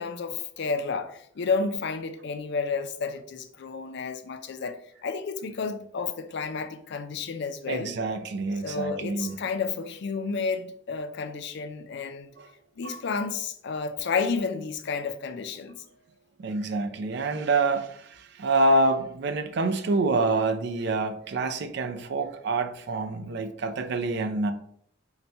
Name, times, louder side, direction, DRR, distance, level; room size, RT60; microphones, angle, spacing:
voice 1, 0.0-4.8 5.0-7.9 8.6-12.3 12.8-15.8, left 5 dB, 60° left, 0.4 m, -31 dB
voice 2, 7.7-9.4 12.4-12.5 16.4-24.5, right 2 dB, 60° right, 0.4 m, -26 dB
4.0 x 2.2 x 4.4 m
head